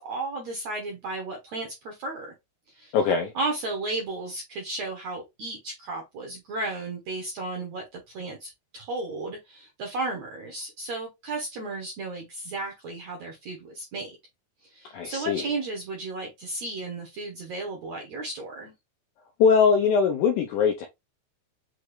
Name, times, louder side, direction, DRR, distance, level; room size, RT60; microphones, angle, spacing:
voice 1, 0.0-2.3 2.7-2.9 3.3-14.2 14.6-18.7, right 2 dB, 70° right, 1.6 m, -34 dB
voice 2, 2.9-3.3 14.9-15.4 19.4-20.9, left 6 dB, 80° left, 1.8 m, -21 dB
6.2 x 2.3 x 3.1 m
omnidirectional pair, 4.3 m